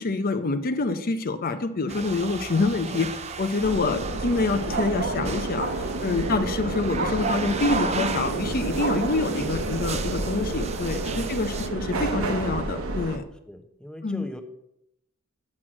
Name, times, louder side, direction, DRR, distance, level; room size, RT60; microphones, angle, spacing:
voice 1, 0.0-3.1 3.4-13.2 14.0-14.2, left 3 dB, 45° left, 8 dB, 0.6 m, -26 dB
sound 1, 1.9-11.7, right 4 dB, 30° right, 0.6 m, -35 dB
sound 2, 3.2-3.6 4.7-6.7 7.0-9.1, right 4 dB, 50° right, 1.1 m, -32 dB
sound 3, 3.6-13.2, right 2 dB, 75° right, 1.1 m, -30 dB
voice 2, 11.1-11.7 13.5-14.4, equal, 5° left, 6 dB, 0.7 m, -41 dB
7.4 x 6.2 x 7.5 m, 0.80 s
head